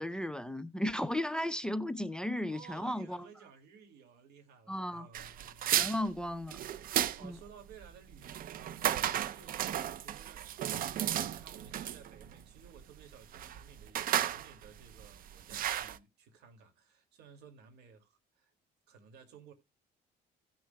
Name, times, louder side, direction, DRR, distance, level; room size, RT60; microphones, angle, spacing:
voice 1, 0.0-3.3 4.7-5.1 5.8-6.6 7.2-7.4, left 1 dB, 5° left, 0.5 m, -35 dB
voice 2, 2.4-6.0 6.8-18.5 18.9-19.5, right 6 dB, 80° right, 2.4 m, -56 dB
sound 1, 5.1-16.0, right 11 dB, 55° right, 0.6 m, -34 dB
17.0 x 6.2 x 2.2 m
cardioid pair, 110°, 17 cm